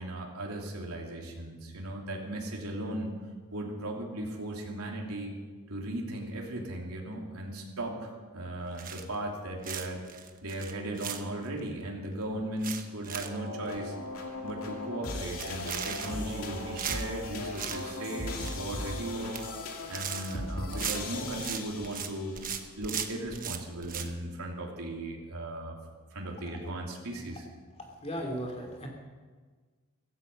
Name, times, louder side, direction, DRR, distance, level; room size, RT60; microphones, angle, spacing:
voice 1, 0.0-3.1 3.5-5.3 5.7-13.9 14.4-19.3 19.9-22.4 22.8-25.8 26.1-27.5, right 1 dB, 80° right, -1 dB, 3.1 m, -37 dB
sound 1, 8.8-9.3 9.6-11.6 12.0-12.1 12.4-13.4 13.7-13.8 14.2-14.3 14.5-14.8 15.3-16.4 16.8-17.8 18.1-18.7 19.1-19.5 19.7-22.1 22.3-24.1, right 8 dB, 40° right, 1.1 m, -37 dB
sound 2, 13.2-22.4, left 2 dB, 70° left, 2.4 m, -38 dB
voice 2, 27.8-28.9, equal, 30° left, 1 dB, 3.0 m, -36 dB
16.0 x 16.0 x 5.5 m, 1.4 s
head